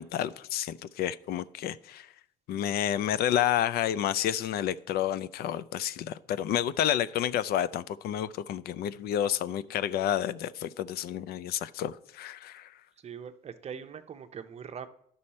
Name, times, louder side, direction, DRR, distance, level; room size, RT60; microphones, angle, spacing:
voice 1, 0.0-2.1 2.5-12.8, left 11 dB, 70° left, 0.4 m, -30 dB
voice 2, 13.0-14.9, right 7 dB, 40° right, 0.7 m, -42 dB
11.5 x 5.5 x 4.2 m
cardioid pair, 110°, 17 cm